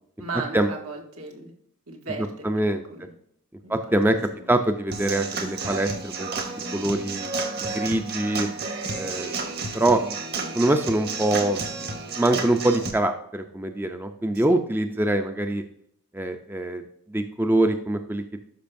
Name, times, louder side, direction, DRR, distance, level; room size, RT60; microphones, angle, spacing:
voice 1, 0.2-1.5 1.9-2.5 2.9-3.1 3.6-3.9 4.3-4.4 10.4-10.6 14.3-14.6, right 3 dB, 80° right, 1 dB, 2.0 m, -36 dB
voice 2, 2.4-2.8 3.7-6.3 6.7-7.3 7.6-8.5 8.9-9.3 9.7-10.2 10.5-11.6 12.2-15.6 16.1-16.8 17.1-18.2, right 1 dB, 10° right, 6 dB, 0.4 m, -24 dB
Human voice / Acoustic guitar / Drum, 4.9-12.9, right 3 dB, 45° right, 1.2 m, -31 dB
12.0 x 5.5 x 2.6 m, 0.69 s
head